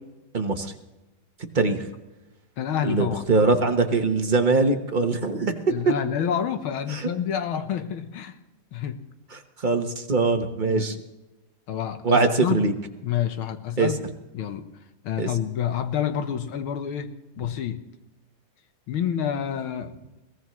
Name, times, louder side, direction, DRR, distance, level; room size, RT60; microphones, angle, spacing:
voice 1, 0.3-0.7 1.5-1.8 2.8-5.5 6.9-7.0 9.6-11.0 12.0-12.7 13.8-13.9 15.2-15.3, right 3 dB, 30° right, 4 dB, 0.9 m, -22 dB
voice 2, 2.6-3.2 5.7-8.4 8.7-9.0 10.7-11.0 11.7-12.7 13.0-14.0 14.3-14.7 15.0-17.8 18.9-19.9, left 9 dB, 75° left, 9 dB, 1.9 m, -28 dB
22.0 x 18.0 x 3.2 m, 1.0 s
omnidirectional pair, 2.3 m